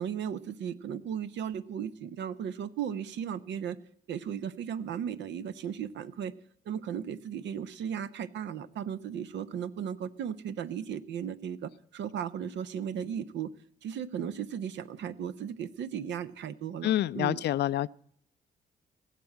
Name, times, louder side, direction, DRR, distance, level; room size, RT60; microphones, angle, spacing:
voice 1, 0.0-3.8 4.1-6.3 6.7-13.5 13.8-17.4, right 8 dB, 60° right, 0.8 m, -36 dB
voice 2, 16.8-17.9, left 13 dB, 55° left, 0.5 m, -27 dB
17.0 x 7.5 x 7.9 m
figure-of-eight pair, 40°, 21 cm